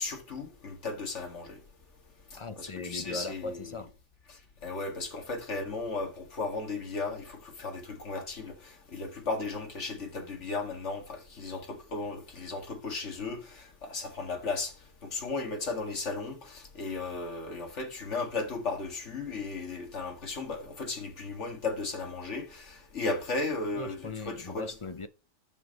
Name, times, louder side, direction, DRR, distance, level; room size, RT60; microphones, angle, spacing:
voice 1, 0.0-1.6 2.3-3.6 4.6-14.7 15.0-24.7, left 3 dB, 75° left, 2.2 m, -35 dB
voice 2, 2.4-3.9 23.7-25.1, left 3 dB, 35° left, 0.6 m, -39 dB
9.9 x 6.2 x 5.2 m
omnidirectional pair, 1.2 m